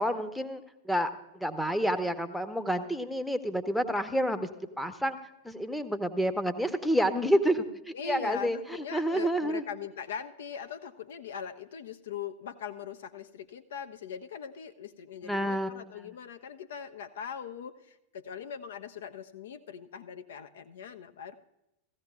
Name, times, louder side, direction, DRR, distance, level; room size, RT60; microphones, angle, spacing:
voice 1, 0.0-5.2 5.4-8.6 8.9-9.6 15.2-15.7, equal, ahead, 7 dB, 0.7 m, -29 dB
voice 2, 7.9-21.3, left 7 dB, 60° left, 9 dB, 0.5 m, -41 dB
16.5 x 14.5 x 2.3 m, 0.90 s
figure-of-eight pair, 90°, 0 cm